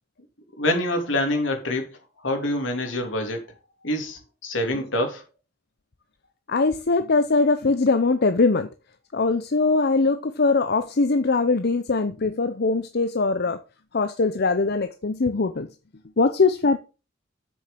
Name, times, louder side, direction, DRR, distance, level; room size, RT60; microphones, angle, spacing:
voice 1, 0.6-1.8 2.2-3.4 3.8-5.2, left 1 dB, 75° left, 3.1 m, -25 dB
voice 2, 6.5-8.7 9.1-13.6 13.9-15.7 16.2-16.8, left 3 dB, 55° left, 0.7 m, -21 dB
7.7 x 6.5 x 5.8 m
head